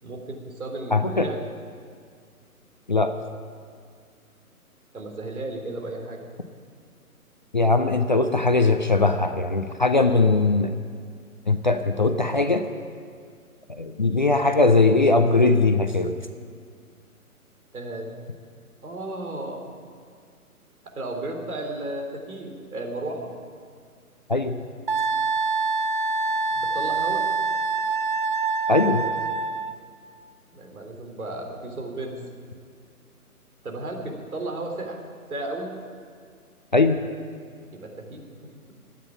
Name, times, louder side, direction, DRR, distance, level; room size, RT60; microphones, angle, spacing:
voice 1, 0.0-1.4 4.9-6.3 17.7-18.1 18.8-19.7 20.9-23.3 26.5-27.3 30.5-32.2 33.6-35.0 35.3-35.7 37.7-38.7, right 2 dB, 70° right, 1 dB, 3.5 m, -34 dB
voice 2, 0.9-1.3 2.9-3.1 7.5-10.7 11.5-12.6 13.7-16.1 24.3-24.6 28.7-29.0 36.7-37.0, left 3 dB, 30° left, 7 dB, 0.5 m, -20 dB
Wind instrument woodwind instrument, 24.9-29.7, right 4 dB, 35° right, 0.4 m, -25 dB
13.0 x 9.2 x 9.9 m, 2.1 s
figure-of-eight pair, 150°, 45 cm